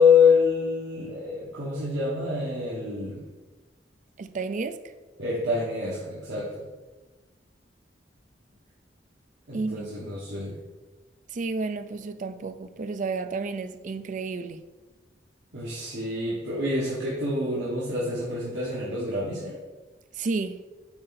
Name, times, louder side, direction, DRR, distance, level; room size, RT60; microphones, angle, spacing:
voice 1, 0.0-3.2 5.2-6.6 9.5-10.6 15.5-19.6, left 4 dB, 80° right, -7 dB, 1.5 m, -26 dB
voice 2, 4.2-4.8 9.5-9.9 11.3-14.6 20.1-20.6, right 4 dB, 45° right, 10 dB, 0.4 m, -31 dB
7.8 x 4.4 x 4.1 m, 1.2 s
head